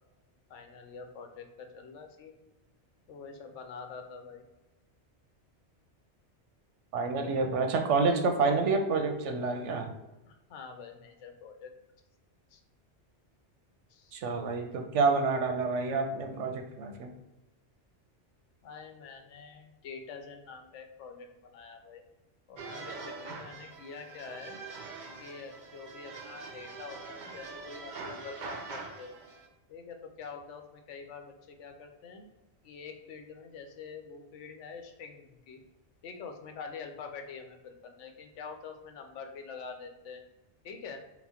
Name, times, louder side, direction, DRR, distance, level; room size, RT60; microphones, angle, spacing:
voice 1, 0.5-2.4 3.1-4.4 10.3-11.7 12.5-12.6 13.9-14.1 18.6-22.0 22.5-24.6 25.2-29.2 29.7-32.3 32.6-35.6 36.0-40.2 40.6-41.0, left 5 dB, 85° left, 5 dB, 1.0 m, -46 dB
voice 2, 6.9-9.9 14.1-17.1, right 4 dB, 90° right, 5 dB, 1.0 m, -28 dB
French Folk Dance, 22.6-29.5, right 4 dB, 55° right, 0.6 m, -44 dB
4.2 x 2.1 x 4.2 m, 1.0 s
omnidirectional pair, 1.2 m